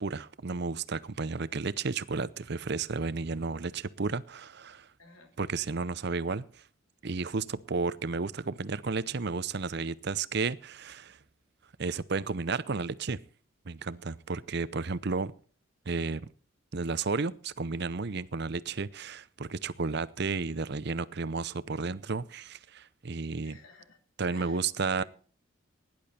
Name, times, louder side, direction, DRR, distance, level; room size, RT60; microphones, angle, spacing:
voice 1, 0.0-4.9 5.4-6.6 7.0-11.2 11.8-13.2 13.7-15.3 15.9-16.3 16.7-23.6 24.2-25.0, right 4 dB, 55° right, 0.7 m, -32 dB
voice 2, 5.0-5.3 23.4-24.0 24.3-24.6 24.9-25.0, left 4 dB, 85° left, 3.2 m, -53 dB
17.0 x 10.5 x 4.3 m
head